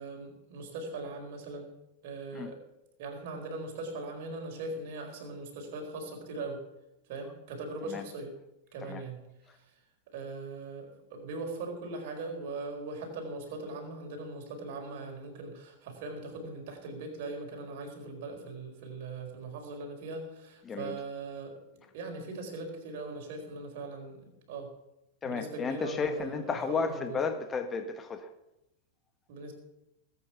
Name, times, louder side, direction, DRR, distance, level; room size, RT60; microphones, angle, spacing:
voice 1, 0.0-1.7 2.0-2.6 3.0-6.6 7.1-8.3 8.7-9.2 9.6-9.7 10.1-21.6 21.9-24.7 25.2-27.2 29.3-29.5, right 3 dB, 50° right, 4.5 m, -40 dB
voice 2, 25.2-28.3, left 5 dB, 20° left, 1.6 m, -33 dB
20.5 x 9.1 x 5.9 m
figure-of-eight pair, 90°, 0 cm